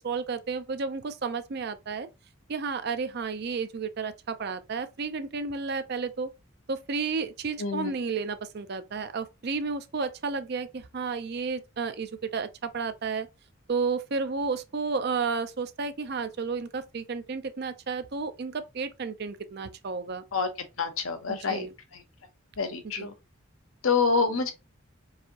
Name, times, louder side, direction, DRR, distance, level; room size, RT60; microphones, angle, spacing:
voice 1, 0.0-2.1 2.5-6.3 6.7-13.3 13.7-20.2 21.3-21.7 23.0-23.1, right 4 dB, 55° right, 0.5 m, -32 dB
voice 2, 7.6-7.9 20.3-20.5 20.8-21.7 22.6-23.1 23.8-24.5, left 5 dB, 85° left, 0.8 m, -26 dB
4.7 x 2.7 x 2.8 m
head